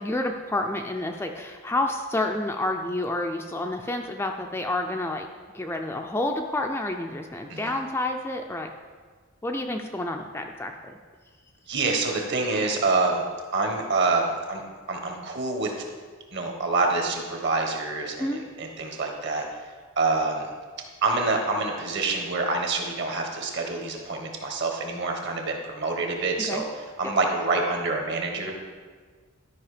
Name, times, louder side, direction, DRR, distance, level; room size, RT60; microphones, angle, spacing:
voice 1, 0.0-5.3 5.5-8.7 9.4-10.9 18.2-18.4 26.4-26.6, left 2 dB, 10° left, 3 dB, 0.4 m, -29 dB
voice 2, 11.7-13.2 13.5-14.6 14.9-15.7 16.3-19.4 20.0-20.5 21.0-26.6 27.0-28.6, right 3 dB, 50° right, 3 dB, 1.3 m, -26 dB
11.5 x 5.3 x 5.0 m, 1.5 s
head